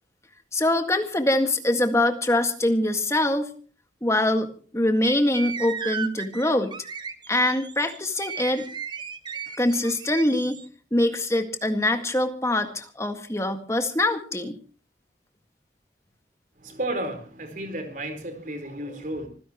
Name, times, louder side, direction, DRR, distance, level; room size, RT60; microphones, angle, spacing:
voice 1, 0.5-3.5 4.0-6.7 7.3-8.7 9.6-10.6 10.9-14.6, left 1 dB, 15° left, 6 dB, 1.9 m, -24 dB
sound 1, 5.0-10.7, right 6 dB, 25° right, 1.3 m, -35 dB
voice 2, 16.5-19.3, right 1 dB, 45° right, 7 dB, 4.3 m, -32 dB
26.0 x 16.0 x 3.1 m, 0.38 s
head